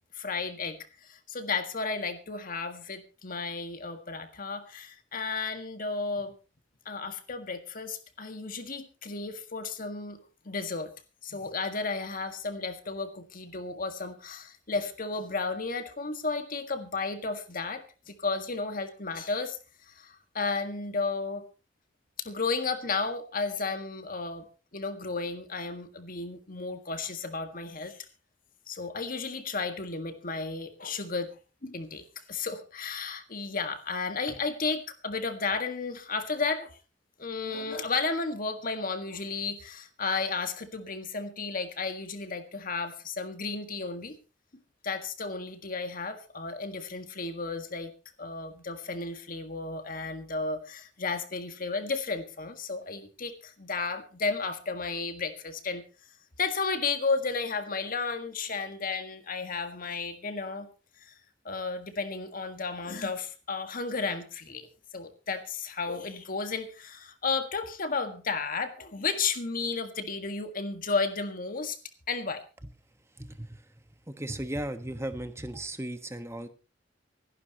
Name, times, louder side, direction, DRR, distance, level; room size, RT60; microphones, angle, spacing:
voice 1, 0.1-6.3 6.8-10.2 10.4-10.9 11.2-19.6 19.9-21.5 22.2-24.4 24.7-28.0 28.7-31.3 31.6-36.8 37.2-44.2 44.8-47.9 48.2-55.8 56.4-60.7 61.1-61.2 61.4-64.7 64.9-71.8 72.1-72.4, left 4 dB, 50° left, 8 dB, 1.7 m, -33 dB
voice 2, 73.2-73.6 74.1-76.5, right 1 dB, 15° right, 9 dB, 1.3 m, -36 dB
25.0 x 11.5 x 2.9 m, 0.32 s
head